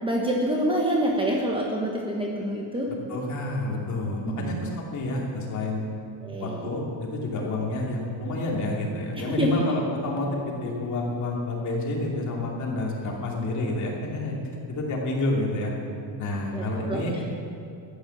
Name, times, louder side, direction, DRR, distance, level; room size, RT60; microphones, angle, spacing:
voice 1, 0.0-2.9 4.3-4.5 6.2-6.7 9.3-9.6 16.5-17.0, right 1 dB, 10° right, -1 dB, 1.2 m, -26 dB
voice 2, 2.9-5.9 6.4-14.4 14.7-15.7 16.2-17.2, left 2 dB, 40° left, -2 dB, 2.9 m, -29 dB
13.5 x 9.8 x 7.2 m, 2.5 s
cardioid pair, 160°, 45 cm